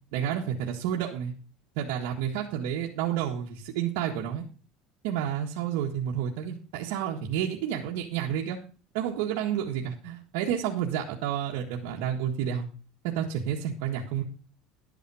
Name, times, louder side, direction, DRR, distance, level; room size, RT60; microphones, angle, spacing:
voice 1, 0.1-1.3 1.7-4.4 5.0-8.6 8.9-12.7 13.0-14.2, right 9 dB, 75° right, -1 dB, 1.6 m, -30 dB
11.0 x 9.1 x 4.8 m, 0.37 s
cardioid pair, 155°, 0 cm